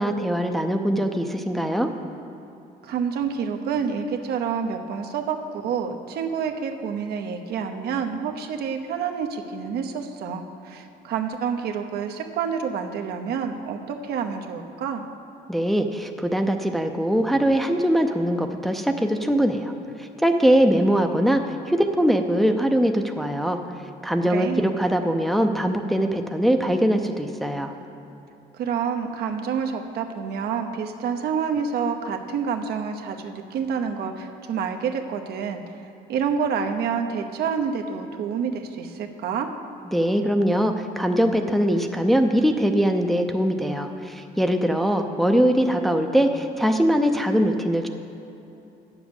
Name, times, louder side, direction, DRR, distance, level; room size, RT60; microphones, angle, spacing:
voice 1, 0.0-1.9 15.5-19.7 20.2-21.4 21.7-23.6 24.0-27.7 39.9-47.9, equal, ahead, 4 dB, 0.6 m, -22 dB
voice 2, 2.8-15.0 24.3-24.7 28.6-35.6 36.1-39.5, right 6 dB, 70° right, 5 dB, 0.9 m, -28 dB
9.2 x 7.2 x 7.1 m, 2.9 s
cardioid pair, 110°, 17 cm